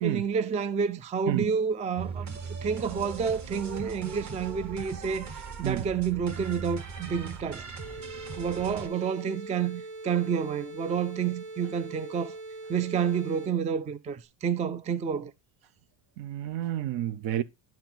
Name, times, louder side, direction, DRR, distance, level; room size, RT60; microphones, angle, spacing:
voice 1, 0.0-2.3 2.6-5.3 5.6-7.6 8.4-12.3 12.7-15.3, right 7 dB, 15° right, 0.4 m, -29 dB
sound 1, 2.0-8.9, right 5 dB, 35° right, 1.4 m, -39 dB
sound 2, 7.8-13.7, right 2 dB, 80° right, 2.3 m, -42 dB
voice 2, 16.2-17.4, right 12 dB, 65° right, 0.8 m, -29 dB
10.5 x 4.4 x 3.8 m
supercardioid pair, 105°, 47 cm